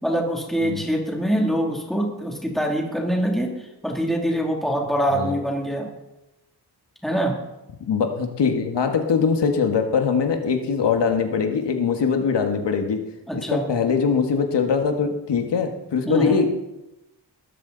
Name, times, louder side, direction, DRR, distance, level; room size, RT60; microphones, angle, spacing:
voice 1, 0.0-5.9 7.0-7.4 13.3-13.7 16.0-16.4, right 1 dB, ahead, -1 dB, 2.8 m, -24 dB
voice 2, 7.9-13.0 13.3-16.4, left 6 dB, 85° left, 4 dB, 1.8 m, -22 dB
20.5 x 13.5 x 4.1 m, 0.95 s
wide cardioid pair, 150°, 41 cm